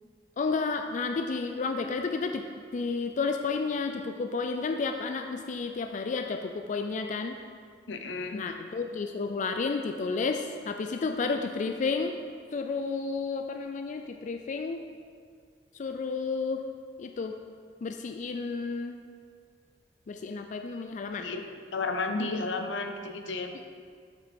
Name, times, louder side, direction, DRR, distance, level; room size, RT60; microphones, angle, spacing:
voice 1, 0.4-2.4 2.7-7.4 8.3-12.1 12.5-14.8 15.7-16.6 17.0-17.3 17.8-19.0 20.1-21.3 23.5-23.6, left 4 dB, 45° left, 5 dB, 0.4 m, -31 dB
voice 2, 7.9-8.4 21.2-23.5, left 3 dB, 85° left, 6 dB, 0.8 m, -33 dB
7.7 x 7.1 x 4.3 m, 2.1 s
head